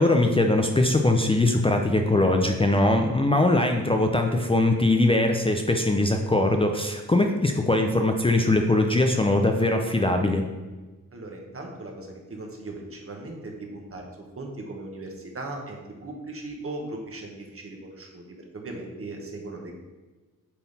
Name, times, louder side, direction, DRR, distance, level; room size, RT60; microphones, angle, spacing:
voice 1, 0.0-10.4, left 2 dB, 15° left, 4 dB, 0.5 m, -21 dB
voice 2, 11.1-14.1 14.3-19.7, right 2 dB, 45° right, 1 dB, 1.4 m, -38 dB
8.4 x 3.9 x 4.1 m, 1.3 s
wide cardioid pair, 90°, 32 cm